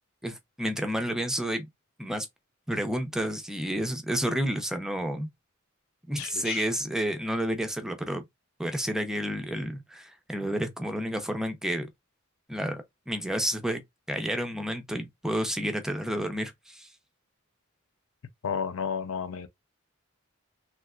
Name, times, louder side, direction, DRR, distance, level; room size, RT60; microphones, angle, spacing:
voice 1, 0.2-1.6 2.0-2.3 2.7-5.3 6.1-8.3 8.6-11.9 12.5-13.8 14.1-16.9, equal, 5° right, 0.5 m, -30 dB
voice 2, 6.2-6.6 18.4-19.5, left 6 dB, 80° left, 0.6 m, -32 dB
3.3 x 2.8 x 2.4 m
head